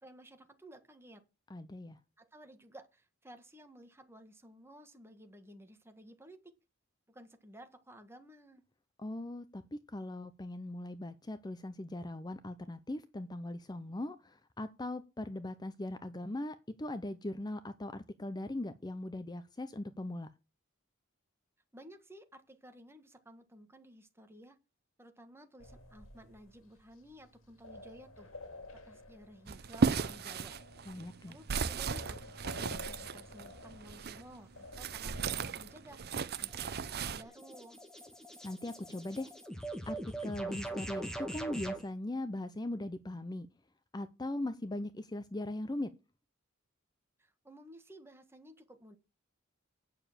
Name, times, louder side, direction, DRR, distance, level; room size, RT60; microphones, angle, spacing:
voice 1, 0.0-1.2 2.2-6.5 7.1-8.6 21.7-24.6 25.0-28.3 28.8-30.6 31.3-32.2 32.4-37.8 47.2-49.0, equal, 10° right, 1.5 m, -55 dB
voice 2, 1.5-2.0 9.0-20.3 30.9-31.4 38.4-39.3 39.9-43.5 43.9-45.9, left 1 dB, 20° left, 0.6 m, -40 dB
sound 1, 25.6-36.2, left 2 dB, 90° left, 2.4 m, -52 dB
sound 2, 29.5-34.2 34.7-37.2, right 5 dB, 50° right, 0.7 m, -35 dB
sound 3, 36.4-41.8, right 2 dB, 5° left, 1.8 m, -42 dB
9.1 x 7.0 x 7.3 m
head